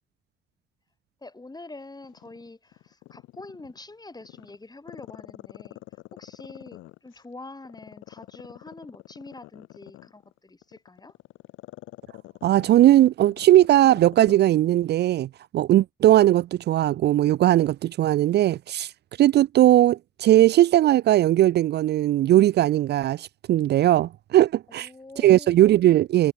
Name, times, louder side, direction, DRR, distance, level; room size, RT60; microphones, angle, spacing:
voice 1, 1.2-5.8 6.1-11.2 24.7-25.6, left 2 dB, 20° left, 5.5 m, -45 dB
Growling, 2.0-3.8 4.2-7.2 7.6-14.5 14.8-14.9, left 18 dB, 80° left, 2.4 m, -45 dB
voice 2, 12.4-18.9 19.2-24.9 25.2-26.3, right 13 dB, 60° right, 0.5 m, -19 dB
supercardioid pair, 55°, 20 cm